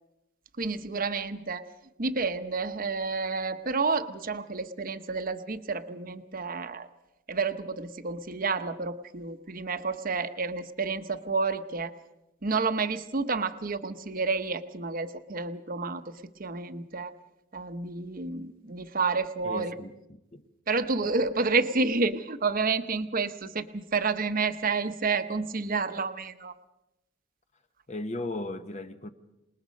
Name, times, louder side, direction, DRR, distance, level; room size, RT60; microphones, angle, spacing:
voice 1, 0.6-1.7 2.0-6.9 7.3-11.9 12.4-17.1 17.5-19.7 20.7-26.5, right 4 dB, 45° right, 1.0 m, -30 dB
voice 2, 19.4-20.0 20.3-20.5 21.0-21.3 27.9-29.1, left 2 dB, 35° left, 1.1 m, -36 dB
27.0 x 20.0 x 5.3 m
head